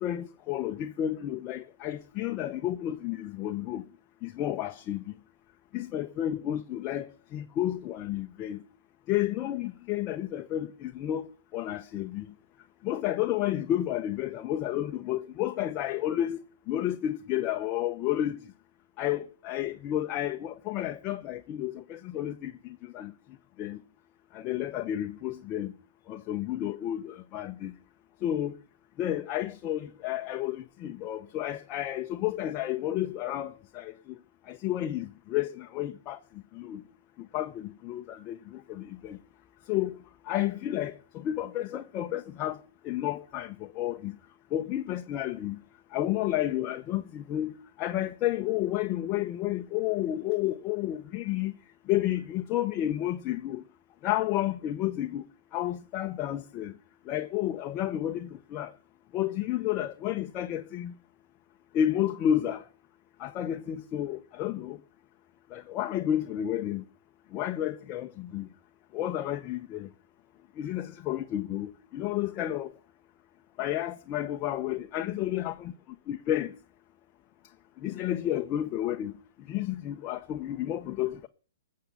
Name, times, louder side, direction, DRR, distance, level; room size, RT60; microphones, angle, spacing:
voice 1, 0.0-3.8 4.2-5.0 5.7-8.6 9.1-11.2 11.5-12.3 12.8-16.4 16.7-18.4 19.0-23.1 23.6-23.8 24.3-25.7 26.1-27.7 28.2-28.5 29.0-33.9 34.5-36.2 36.5-36.8 37.3-39.2 39.7-40.0 40.3-42.6 42.8-44.1 44.5-45.6 45.9-51.5 51.9-53.6 54.0-55.2 55.5-56.7 57.1-58.7 59.1-60.9 61.7-62.6 63.2-64.8 65.5-66.8 67.3-68.5 68.9-69.9 70.6-72.7 73.6-75.5 76.1-76.5 77.8-79.1 79.5-81.3, left 12 dB, 30° left, 0.9 m, -31 dB
19.5 x 7.6 x 7.1 m
hypercardioid pair, 135°, 0 cm